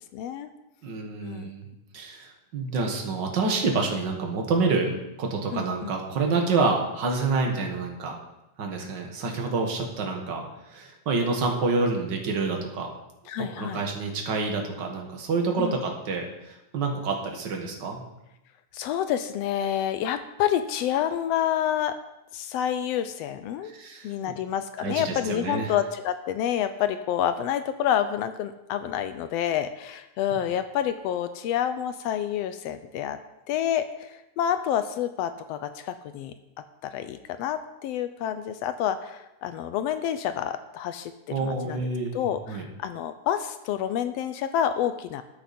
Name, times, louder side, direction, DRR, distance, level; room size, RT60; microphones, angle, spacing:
voice 1, 0.1-0.5 1.2-1.5 5.5-5.9 13.3-13.8 15.6-15.8 18.7-22.0 22.3-23.7 24.0-33.2 33.5-36.3 36.8-41.1 41.4-41.9 42.1-45.2, left 10 dB, 80° left, 10 dB, 1.5 m, -28 dB
voice 2, 0.8-1.7 1.9-8.2 8.6-12.9 13.4-18.0 23.6-24.1 24.8-25.7 30.3-30.4 41.3-42.7, right 3 dB, 45° right, 2 dB, 1.9 m, -28 dB
12.5 x 9.2 x 4.3 m, 0.94 s
omnidirectional pair, 3.3 m